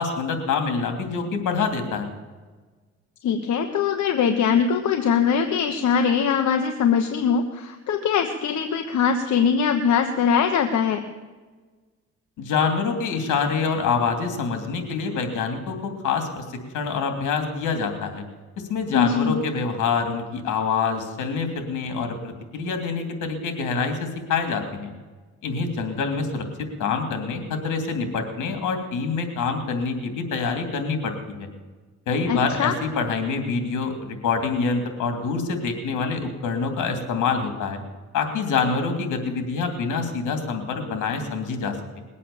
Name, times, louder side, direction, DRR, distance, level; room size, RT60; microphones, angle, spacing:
voice 1, 0.0-2.1 12.4-18.2 18.7-24.9 25.4-26.4 26.8-31.5 32.1-37.8 38.1-42.0, left 5 dB, 85° left, 6 dB, 2.9 m, -26 dB
voice 2, 3.2-11.0 18.9-19.4 32.3-32.7, left 7 dB, 70° left, 6 dB, 1.2 m, -22 dB
20.5 x 8.4 x 7.2 m, 1.3 s
cardioid pair, 90°, 30 cm